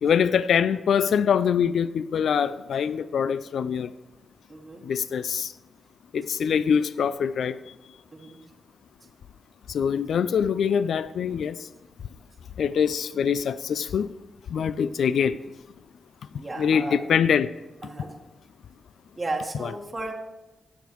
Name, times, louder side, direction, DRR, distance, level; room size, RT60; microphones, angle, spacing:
voice 1, 0.0-3.9 4.9-5.5 6.1-7.5 9.7-11.6 12.6-14.1 14.5-15.4 16.6-17.5 19.6-19.7, left 7 dB, 75° left, 0.3 m, -24 dB
voice 2, 4.5-4.8 8.1-8.4 16.3-17.0 17.8-18.1 19.2-20.1, right 2 dB, 25° right, 1.3 m, -34 dB
18.5 x 7.1 x 3.1 m
wide cardioid pair, 115°, 0 cm